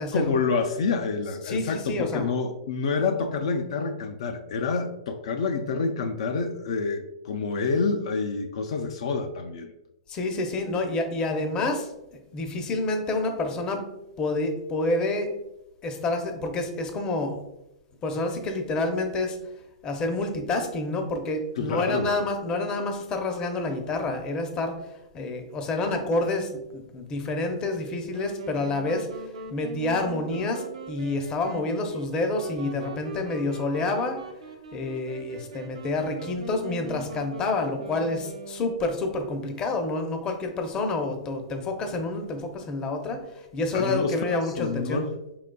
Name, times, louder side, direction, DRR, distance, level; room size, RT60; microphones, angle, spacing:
voice 1, 0.1-9.7 21.6-22.1 43.7-45.1, left 4 dB, 70° left, 6 dB, 0.4 m, -28 dB
voice 2, 1.4-2.3 10.1-11.9 12.3-13.9 14.2-15.3 15.8-17.4 18.0-19.4 19.8-29.1 29.5-34.2 34.7-45.0, left 2 dB, 25° left, 5 dB, 0.6 m, -28 dB
Wind instrument woodwind instrument, 28.1-39.0, right 3 dB, 80° right, 0.7 m, -41 dB
4.4 x 3.8 x 2.2 m, 0.90 s
hypercardioid pair, 135°, 3 cm